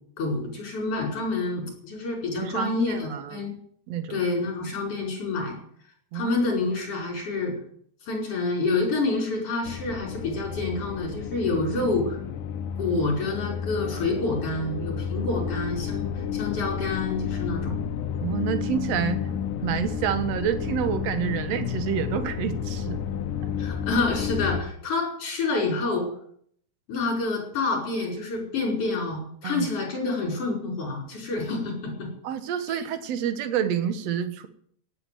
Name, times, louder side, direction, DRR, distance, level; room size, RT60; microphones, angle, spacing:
voice 1, 0.2-3.5 4.1-5.6 6.1-7.5 8.0-12.2 12.8-17.8 23.6-26.1 26.9-32.1 32.7-32.8, left 3 dB, 45° left, 0 dB, 5.7 m, -28 dB
voice 2, 2.4-3.5 3.9-4.3 6.1-6.3 18.2-19.2 19.6-23.0 29.4-29.8 32.2-34.5, right 9 dB, 60° right, 10 dB, 1.9 m, -28 dB
sound 1, 9.6-24.6, left 8 dB, 75° left, 2.3 m, -31 dB
17.5 x 8.4 x 7.7 m, 0.64 s
omnidirectional pair, 4.1 m